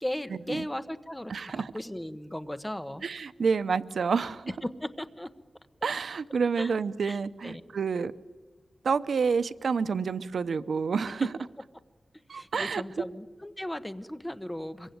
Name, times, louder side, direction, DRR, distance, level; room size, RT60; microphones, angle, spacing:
voice 1, 0.0-3.0 4.6-5.3 6.6-6.7 7.0-7.2 7.4-7.6 11.2-11.3 12.3-15.0, left 1 dB, 10° left, 10 dB, 1.1 m, -36 dB
voice 2, 1.3-1.7 3.0-4.5 5.8-8.1 8.8-11.3 12.3-12.8, right 5 dB, 90° right, 14 dB, 0.8 m, -28 dB
25.5 x 23.0 x 9.4 m, 1.2 s
wide cardioid pair, 125°, 0 cm